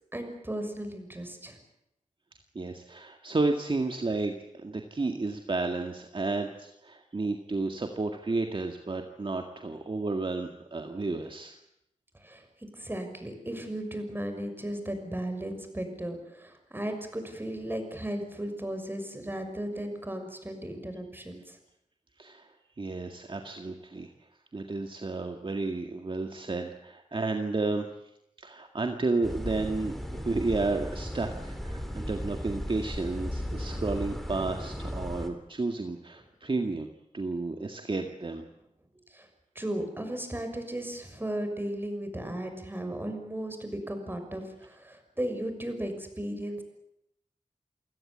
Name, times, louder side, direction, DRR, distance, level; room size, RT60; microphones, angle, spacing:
voice 1, 0.1-1.6 12.2-12.4 12.7-21.6 39.1-39.3 39.5-46.6, right 1 dB, 15° right, 6 dB, 6.1 m, -35 dB
voice 2, 2.6-11.6 22.2-22.5 22.8-24.1 24.5-27.9 28.4-36.9 37.1-38.4, right 3 dB, 40° right, 4 dB, 2.0 m, -32 dB
sound 1, 29.2-35.3, equal, ahead, 3.8 m, -36 dB
29.0 x 17.0 x 8.7 m, 0.82 s
wide cardioid pair, 75°, 13 cm